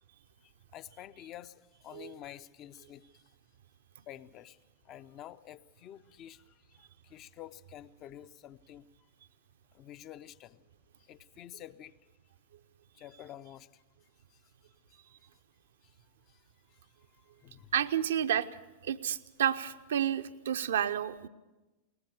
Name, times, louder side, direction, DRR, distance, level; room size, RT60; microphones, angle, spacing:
voice 1, 0.4-1.5 1.8-3.0 4.1-4.6 4.8-8.9 9.7-10.6 11.1-11.9 13.0-13.8 17.4-17.7, left 12 dB, 35° left, 14 dB, 0.7 m, -49 dB
voice 2, 17.7-18.5 18.8-21.3, right 10 dB, 60° right, 10 dB, 0.7 m, -30 dB
21.5 x 19.0 x 6.8 m, 1.1 s
figure-of-eight pair, 90°, 0 cm